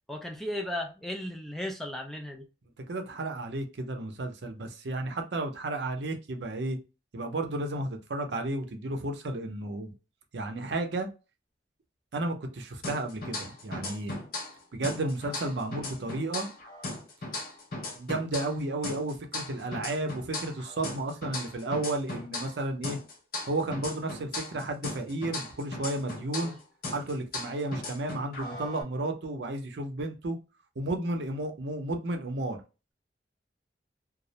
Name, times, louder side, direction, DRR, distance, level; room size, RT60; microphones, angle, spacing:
voice 1, 0.1-2.5 26.3-26.6, left 1 dB, ahead, 0.3 m, -36 dB
voice 2, 2.9-6.8 7.1-9.9 10.3-11.1 12.1-14.2 14.7-16.5 17.9-23.0 23.5-26.5 26.9-30.4 30.8-32.6, right 2 dB, 70° right, 0.6 m, -33 dB
sound 1, 12.8-14.6 14.8-18.6 18.8-22.6 22.8-26.6 26.8-28.8, left 2 dB, 55° left, 0.7 m, -37 dB
2.3 x 2.0 x 2.7 m
head